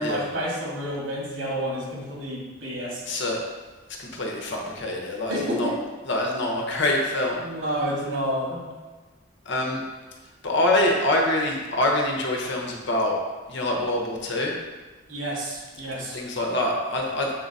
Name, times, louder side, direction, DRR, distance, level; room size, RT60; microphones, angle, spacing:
voice 1, 0.0-3.0 5.3-5.8 7.4-8.7 15.1-16.2, equal, 85° right, -3 dB, 2.0 m, -29 dB
voice 2, 3.0-3.4 4.0-5.7 6.1-7.4 9.4-9.8 10.4-13.2 13.5-14.5 16.1-17.4, left 1 dB, 60° left, 0 dB, 1.0 m, -25 dB
7.0 x 3.8 x 4.1 m, 1.3 s
head